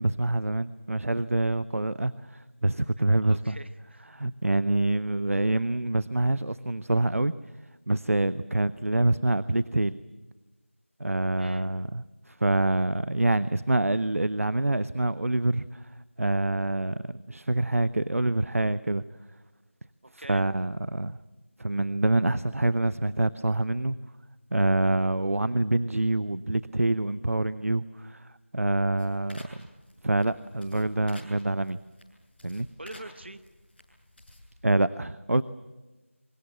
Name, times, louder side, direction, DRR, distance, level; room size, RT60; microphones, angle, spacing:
voice 1, 0.0-3.6 4.1-7.3 7.9-10.0 11.0-15.8 16.2-19.0 20.1-21.2 21.6-24.0 24.5-29.7 30.0-31.8 32.4-32.7 34.6-35.4, right 2 dB, 80° right, 16 dB, 0.7 m, -26 dB
voice 2, 3.2-4.1 11.4-11.7 20.0-20.4 32.8-33.4, right 1 dB, 50° right, 11 dB, 1.2 m, -44 dB
sound 1, 29.0-34.6, left 1 dB, 45° left, 7.4 m, -52 dB
25.0 x 24.0 x 7.7 m, 1.2 s
figure-of-eight pair, 175°, 7 cm